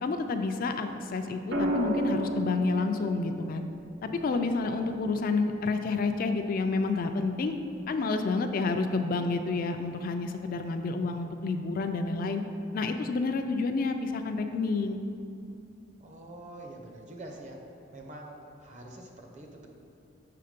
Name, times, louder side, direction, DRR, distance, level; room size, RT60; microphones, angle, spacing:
voice 1, 0.0-3.7 4.2-7.6 7.9-12.4 12.7-15.0, left 3 dB, 50° left, 6 dB, 0.3 m, -29 dB
sound 1, 1.5-5.6 7.3-7.7, right 1 dB, 85° right, 0.7 m, -34 dB
voice 2, 16.0-17.6 17.9-19.7, right 1 dB, 40° right, 1 dB, 0.7 m, -45 dB
6.7 x 3.6 x 5.1 m, 2.5 s
head